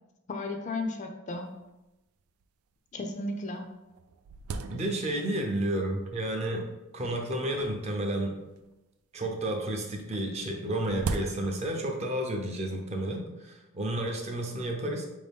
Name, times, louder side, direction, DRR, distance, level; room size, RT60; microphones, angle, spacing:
voice 1, 0.3-1.5 2.9-3.7, left 2 dB, 35° left, 4 dB, 0.4 m, -34 dB
sound 1, 1.3-1.4 1.6-1.7 2.4-2.5 3.1-3.2 3.6-5.4 6.1-6.6 7.5-8.8 10.1-11.9, right 4 dB, 90° right, 0.3 m, -39 dB
voice 2, 4.7-8.4 9.1-15.0, right 1 dB, 30° right, 2 dB, 0.5 m, -31 dB
4.2 x 2.7 x 3.5 m, 0.99 s
head